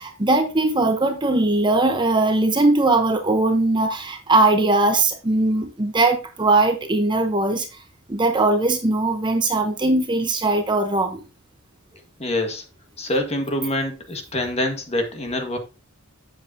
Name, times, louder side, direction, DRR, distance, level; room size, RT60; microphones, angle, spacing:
voice 1, 0.0-7.7 8.1-11.2, right 2 dB, 20° right, 0.8 m, -20 dB
voice 2, 12.2-12.6 13.0-15.6, left 1 dB, 30° left, 1.5 m, -25 dB
8.0 x 7.6 x 2.7 m
head